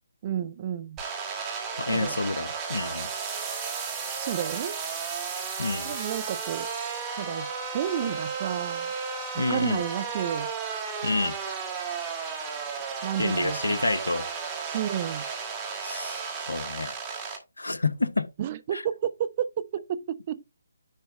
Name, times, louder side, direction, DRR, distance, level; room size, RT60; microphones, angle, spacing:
voice 1, 0.2-1.0 1.9-2.2 4.2-4.8 5.9-6.7 7.2-7.5 7.7-8.9 9.3-10.5 13.0-13.8 14.6-15.2 18.4-20.4, right 10 dB, 30° right, 0.6 m, -31 dB
sound 1, 1.0-17.4, right 5 dB, 15° right, 2.1 m, -34 dB
voice 2, 1.8-3.1 5.6-5.9 9.4-9.8 11.0-11.4 13.2-14.3 15.8-16.9 17.6-18.3 18.7-18.8, left 3 dB, 70° left, 0.9 m, -28 dB
10.0 x 3.4 x 4.0 m
figure-of-eight pair, 145°, 0 cm